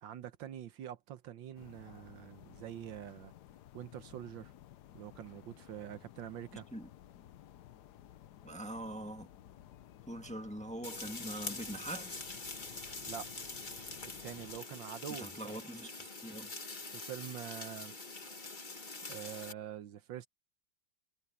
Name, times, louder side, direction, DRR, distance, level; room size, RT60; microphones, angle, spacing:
voice 1, 0.0-3.3 3.7-4.5 4.9-6.7 13.1-13.3 14.2-15.6 16.9-17.9 19.1-20.3, right 11 dB, 80° right, 1.6 m, -45 dB
sound 1, 1.6-14.6, left 12 dB, 65° left, 1.2 m, -56 dB
voice 2, 8.4-9.3 10.1-12.2 15.2-16.5, right 1 dB, 5° left, 1.3 m, -43 dB
sound 2, 10.8-19.5, left 3 dB, 25° left, 1.8 m, -45 dB
omnidirectional pair, 2.1 m